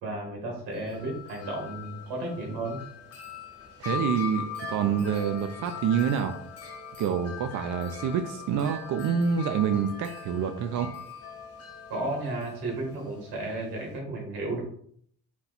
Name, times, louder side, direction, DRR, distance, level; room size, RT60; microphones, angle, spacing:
voice 1, 0.0-2.8 11.9-14.6, right 2 dB, 90° right, 1 dB, 1.7 m, -33 dB
Wind chime, 0.7-14.0, left 6 dB, 40° left, 1.2 m, -41 dB
voice 2, 3.8-6.3 7.0-10.9, right 7 dB, 55° right, 6 dB, 0.5 m, -27 dB
4.3 x 2.3 x 4.0 m, 0.63 s
cardioid pair, 110°, 37 cm